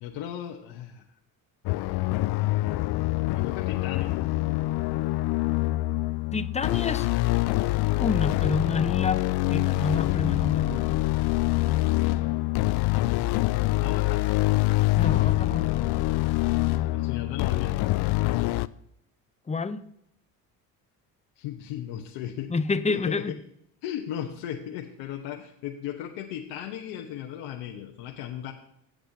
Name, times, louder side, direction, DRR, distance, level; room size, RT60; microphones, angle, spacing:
voice 1, 0.0-1.0 3.3-4.1 13.8-14.5 16.9-17.9 21.4-22.5 22.9-23.4 23.8-28.5, left 10 dB, 75° left, 2 dB, 1.1 m, -36 dB
sound 1, 1.7-18.7, left 19 dB, 60° left, 0.5 m, -25 dB
voice 2, 6.3-7.1 8.0-9.2 9.5-11.0 15.0-16.0 19.5-19.8 22.5-23.4, left 4 dB, 15° left, 13 dB, 0.6 m, -28 dB
17.0 x 7.8 x 2.8 m, 0.77 s
supercardioid pair, 75°, 46 cm